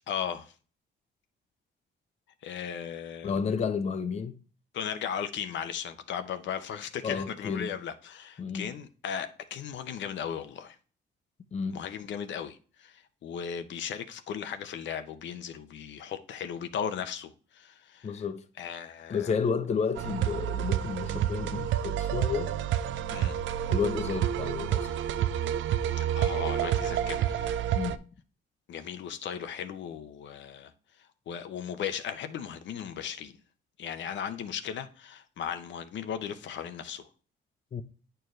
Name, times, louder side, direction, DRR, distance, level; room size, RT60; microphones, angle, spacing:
voice 1, 0.1-0.5 2.4-3.4 4.7-10.8 11.7-18.1 18.6-19.3 23.1-23.4 25.9-27.6 28.7-30.7 31.3-33.3 33.8-37.1, left 8 dB, 65° left, 0.7 m, -37 dB
voice 2, 3.2-4.4 7.0-7.7 8.4-8.7 11.5-11.8 18.0-18.5 19.1-22.5 23.7-24.9 27.7-28.0 37.7-37.8, left 6 dB, 35° left, 0.5 m, -31 dB
sound 1, 20.0-28.0, right 10 dB, 75° right, 0.4 m, -29 dB
8.8 x 4.6 x 3.2 m
cardioid pair, 90°, 20 cm